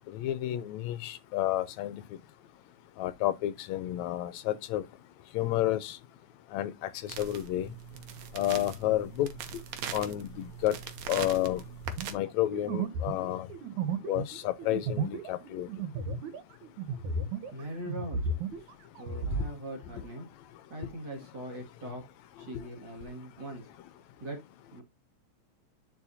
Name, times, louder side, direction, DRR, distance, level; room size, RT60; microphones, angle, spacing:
voice 1, 0.1-2.0 3.0-4.8 5.3-6.0 6.5-7.7 8.3-9.3 9.9-10.8 11.1-11.6 12.1-13.5 14.1-15.7, left 14 dB, 80° left, 1.9 m, -30 dB
sound 1, 7.1-12.1, right 8 dB, 70° right, 2.1 m, -41 dB
sound 2, 11.8-17.6 17.9-19.5, right 4 dB, 85° right, 2.6 m, -34 dB
voice 2, 17.5-18.3 18.6-20.3 20.7-22.1 22.4-23.7 24.2-24.4 24.7-24.8, right 1 dB, 40° right, 2.5 m, -41 dB
10.5 x 4.6 x 2.7 m
omnidirectional pair, 3.3 m